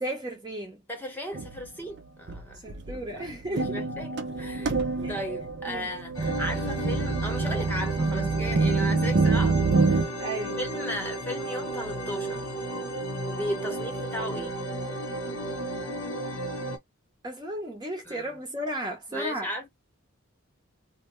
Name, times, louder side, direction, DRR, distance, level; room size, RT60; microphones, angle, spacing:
voice 1, 0.0-0.8 2.5-3.9 5.0-5.2 5.7-5.9 10.2-10.6 17.2-19.5, right 1 dB, 20° right, 0.7 m, -34 dB
voice 2, 0.9-10.2 10.6-12.5 13.3-14.6 18.0-18.2 19.1-19.7, equal, 10° left, 1.0 m, -36 dB
sound 1, 1.3-1.7 2.3-2.4 2.7-10.1, right 3 dB, 55° right, 0.6 m, -26 dB
sound 2, 6.1-16.8, right 1 dB, 65° left, 0.8 m, -33 dB
2.6 x 2.1 x 3.0 m
head